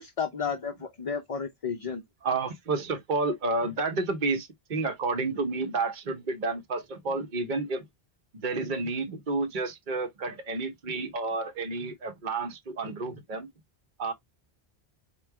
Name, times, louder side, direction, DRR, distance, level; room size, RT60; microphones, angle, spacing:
voice 1, 0.0-2.0, left 6 dB, 45° left, 0.5 m, -32 dB
voice 2, 2.2-7.9 8.3-13.5 14.0-14.1, right 3 dB, 50° right, 1.1 m, -30 dB
4.2 x 2.2 x 4.6 m
omnidirectional pair, 1.1 m